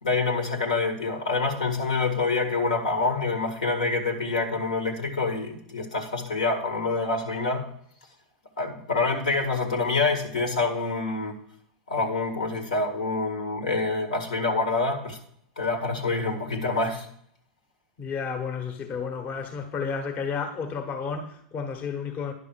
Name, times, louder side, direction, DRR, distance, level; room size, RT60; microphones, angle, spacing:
voice 1, 0.0-7.7 8.6-11.3 11.9-15.2 15.6-17.1, left 3 dB, 80° left, 1.8 m, -26 dB
voice 2, 18.0-22.3, left 5 dB, 40° left, 1.3 m, -32 dB
10.0 x 5.9 x 4.6 m
hypercardioid pair, 95°, 4 cm